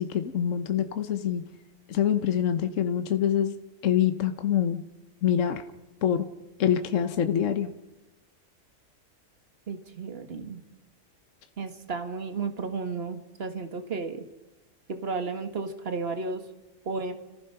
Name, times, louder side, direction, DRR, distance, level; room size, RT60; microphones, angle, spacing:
voice 1, 0.0-1.4 1.9-3.6 3.8-4.8 5.2-5.6 6.0-6.3 6.6-7.7, left 9 dB, 55° left, 8 dB, 1.2 m, -25 dB
voice 2, 9.7-10.6 11.6-14.2 14.9-16.4 16.9-17.1, right 4 dB, 40° right, 8 dB, 1.8 m, -33 dB
30.0 x 15.5 x 5.7 m, 1.0 s
omnidirectional pair, 1.6 m